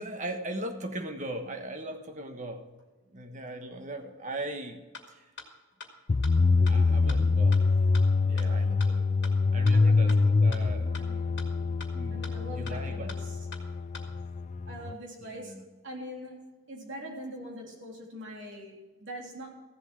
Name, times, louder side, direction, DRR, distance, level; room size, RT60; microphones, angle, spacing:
voice 1, 0.0-2.8 3.1-4.8 5.2-5.3 6.6-7.6 8.2-11.0 11.9-12.2 12.5-13.1 15.2-15.6, right 1 dB, 35° right, 5 dB, 1.3 m, -39 dB
sound 1, 4.9-5.0 5.4-5.5 5.8-5.9 6.2-6.3 6.7-6.8 7.1-7.2 7.5-7.6 7.9-8.0 8.4-8.5 8.8-8.9 9.2-9.3 9.7-9.8 10.1-10.2 10.5-10.6 10.9-11.0 11.4-11.5 11.8-11.9 12.2-12.3 12.7-12.8 13.1-13.2 13.5-13.6 13.9-14.0, left 4 dB, 55° left, 2.0 m, -42 dB
sound 2, 6.1-14.9, left 4 dB, 35° left, 0.3 m, -25 dB
voice 2, 9.7-10.2 11.0-11.8 12.1-13.4 14.7-15.5 15.8-19.5, equal, 60° right, -1 dB, 3.5 m, -43 dB
15.0 x 7.8 x 6.1 m, 1.2 s
head